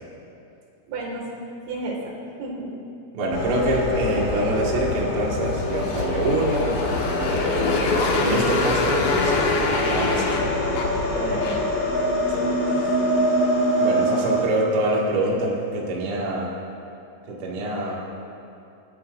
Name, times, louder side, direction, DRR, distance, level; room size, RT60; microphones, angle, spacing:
voice 1, 0.9-1.3 1.7-2.1 2.4-2.7 11.0-11.9, right 2 dB, 65° right, -2 dB, 4.1 m, -32 dB
voice 2, 3.1-6.7 7.2-7.5 8.2-9.3 9.8-10.2 12.3-12.9 13.8-16.5 17.3-17.9, right 1 dB, 50° right, -4 dB, 1.7 m, -25 dB
sound 1, 3.3-14.4, left 1 dB, 50° left, 3.5 m, -24 dB
sound 2, 3.9-9.6, left 1 dB, 20° left, 3.6 m, -38 dB
Motorcycle, 5.5-11.8, left 4 dB, 65° left, 2.5 m, -27 dB
28.5 x 11.5 x 2.6 m, 2.6 s
omnidirectional pair, 5.5 m